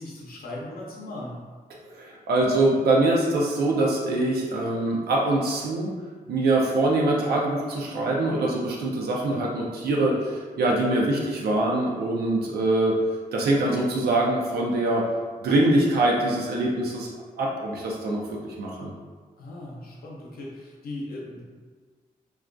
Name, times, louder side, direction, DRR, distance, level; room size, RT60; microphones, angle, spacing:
voice 1, 0.0-1.4 19.4-21.4, left 1 dB, 70° left, -5 dB, 0.6 m, -38 dB
voice 2, 1.9-5.9 6.3-13.0 13.3-15.1 15.4-17.1 17.4-18.9, right 2 dB, 85° right, -2 dB, 0.4 m, -24 dB
2.3 x 2.2 x 2.5 m, 1.5 s
cardioid pair, 65°, 16 cm